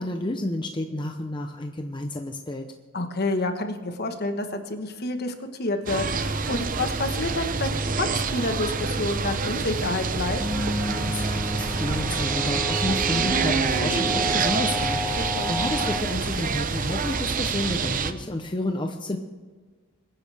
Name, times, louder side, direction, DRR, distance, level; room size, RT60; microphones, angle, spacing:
voice 1, 0.0-2.7 10.9-19.2, left 1 dB, 20° left, 4 dB, 0.8 m, -31 dB
voice 2, 2.9-10.4 15.2-15.6, left 2 dB, 50° left, 6 dB, 1.4 m, -29 dB
sound 1, 5.9-18.1, right 5 dB, 40° right, 0.7 m, -27 dB
sound 2, 10.4-16.0, left 1 dB, ahead, 1.8 m, -31 dB
24.0 x 10.0 x 3.5 m, 1.4 s
head